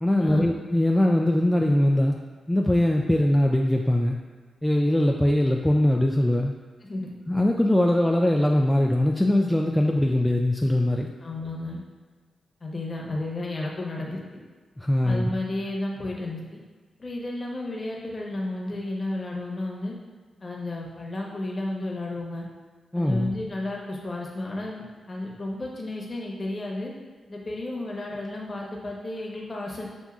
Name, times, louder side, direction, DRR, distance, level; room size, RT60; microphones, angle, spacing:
voice 1, 0.0-2.2 2.5-4.2 4.6-6.5 7.3-11.1 14.8-15.3 22.9-23.3, left 1 dB, 10° left, 0 dB, 0.3 m, -21 dB
voice 2, 11.2-11.8 12.6-14.4 15.0-16.6 17.0-19.9 20.4-22.4 22.9-26.9 27.3-29.9, left 2 dB, 35° left, -2 dB, 1.0 m, -32 dB
7.1 x 2.6 x 2.4 m, 1.4 s
cardioid pair, 65°, 0 cm